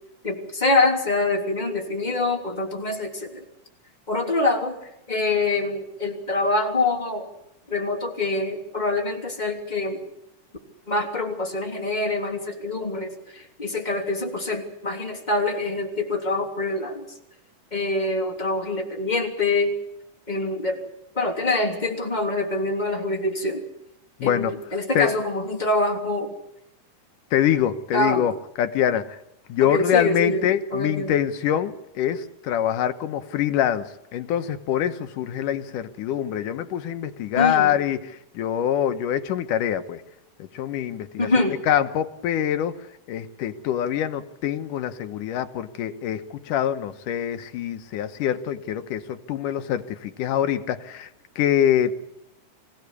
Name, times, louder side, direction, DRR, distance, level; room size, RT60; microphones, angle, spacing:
voice 1, 0.2-3.4 4.1-4.8 5.1-7.3 7.7-10.1 10.9-17.1 17.7-19.7 20.3-20.8 21.1-23.6 24.2-26.3 27.9-28.2 29.6-31.2 37.3-37.8 41.2-41.6, left 2 dB, 15° left, 3.1 m, -25 dB
voice 2, 24.2-24.5 24.9-25.2 27.3-29.2 29.5-40.0 40.4-41.3 41.7-42.8 43.1-51.1 51.4-51.9, left 10 dB, 80° left, 2.7 m, -24 dB
25.5 x 17.0 x 8.4 m
omnidirectional pair, 3.7 m